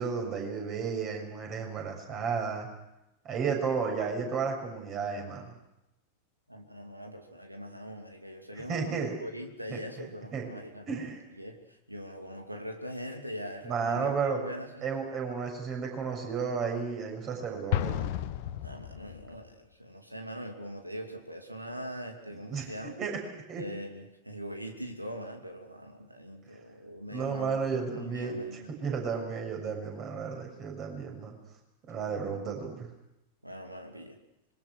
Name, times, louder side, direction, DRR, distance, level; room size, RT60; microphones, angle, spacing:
voice 1, 0.0-2.7 3.2-5.4 8.7-9.2 9.7-10.5 10.9-11.2 13.6-14.4 14.8-18.0 22.5-23.2 23.5-23.6 27.1-31.3 31.9-32.9, right 5 dB, 35° right, 3 dB, 6.5 m, -33 dB
voice 2, 6.5-11.1 11.4-14.8 18.6-22.9 23.6-28.7 33.4-34.2, equal, 90° right, 4 dB, 2.8 m, -42 dB
Explosion, 17.7-19.4, left 12 dB, 45° left, 1.4 m, -32 dB
26.0 x 22.5 x 6.3 m, 0.89 s
figure-of-eight pair, 90°, 0 cm